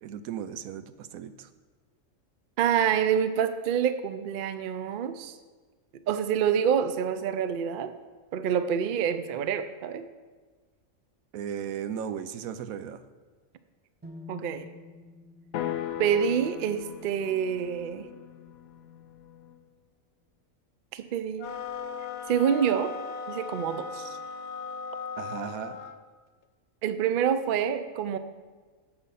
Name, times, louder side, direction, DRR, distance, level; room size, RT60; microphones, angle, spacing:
voice 1, 0.0-1.5 11.3-13.0 25.2-25.8, right 8 dB, 85° right, 12 dB, 1.1 m, -36 dB
voice 2, 2.6-5.4 6.1-7.9 8.3-10.0 14.3-14.7 16.0-18.1 20.9-21.5 22.3-22.9 23.3-24.2 26.8-28.2, right 8 dB, 60° right, 11 dB, 0.5 m, -27 dB
sound 1, 14.0-18.0, left 3 dB, 10° right, 0.7 m, -50 dB
sound 2, 15.5-19.6, left 11 dB, 85° left, 1.1 m, -38 dB
sound 3, 21.4-26.0, left 6 dB, 60° left, 0.9 m, -37 dB
8.8 x 7.2 x 5.6 m, 1.4 s
omnidirectional pair, 1.4 m